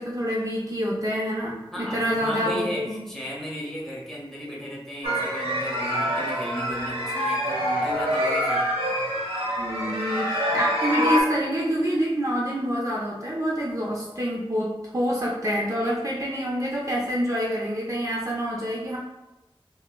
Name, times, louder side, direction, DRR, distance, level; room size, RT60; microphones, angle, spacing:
voice 1, 0.0-3.0 9.6-19.0, equal, 35° right, -5 dB, 0.6 m, -27 dB
voice 2, 1.7-8.7, equal, 5° left, -5 dB, 1.0 m, -35 dB
sound 1, 5.0-11.2, equal, 75° right, 0.8 m, -26 dB
5.3 x 2.1 x 2.2 m, 0.98 s
wide cardioid pair, 45°, 10 cm